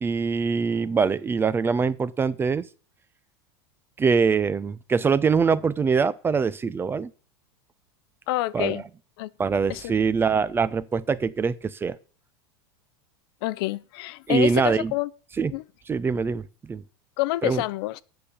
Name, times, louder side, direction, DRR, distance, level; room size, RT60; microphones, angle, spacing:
voice 1, 0.0-2.7 4.0-7.1 8.5-8.8 9.4-12.0 14.3-14.9 15.4-15.5 15.9-16.8 17.4-17.6, right 5 dB, 15° right, 0.5 m, -23 dB
voice 2, 8.3-8.8 9.2-9.3 9.7-9.8 13.4-15.1 15.5-15.6 17.2-18.0, left 18 dB, 65° left, 0.5 m, -27 dB
7.8 x 6.9 x 8.3 m
supercardioid pair, 120°, 14 cm